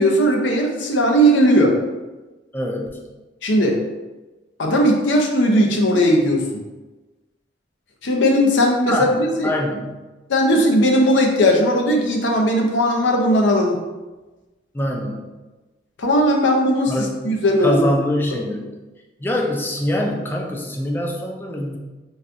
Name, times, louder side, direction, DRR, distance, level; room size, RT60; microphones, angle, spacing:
voice 1, 0.0-1.8 3.4-3.8 4.6-6.4 8.0-9.5 10.3-13.8 16.0-16.9 17.2-17.8, equal, 85° left, 1 dB, 0.6 m, -17 dB
voice 2, 2.5-3.0 8.9-10.0 14.7-15.2 16.9-18.7 19.2-21.8, left 1 dB, 10° left, 0 dB, 0.3 m, -24 dB
4.0 x 2.2 x 2.5 m, 1.2 s
head